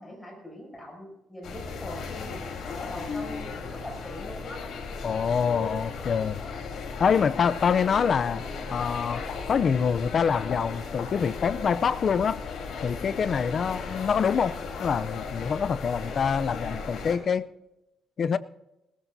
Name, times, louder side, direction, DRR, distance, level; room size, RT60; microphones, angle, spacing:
voice 1, 0.0-4.6, left 1 dB, 5° left, -1 dB, 7.3 m, -42 dB
sound 1, 1.4-17.2, left 4 dB, 60° left, 3.8 m, -36 dB
voice 2, 5.0-6.4 7.0-8.4 8.7-12.4 12.8-14.5 14.8-17.5 18.2-18.4, left 6 dB, 40° left, 14 dB, 0.5 m, -25 dB
20.0 x 19.5 x 2.7 m, 0.91 s
cardioid pair, 155°, 0 cm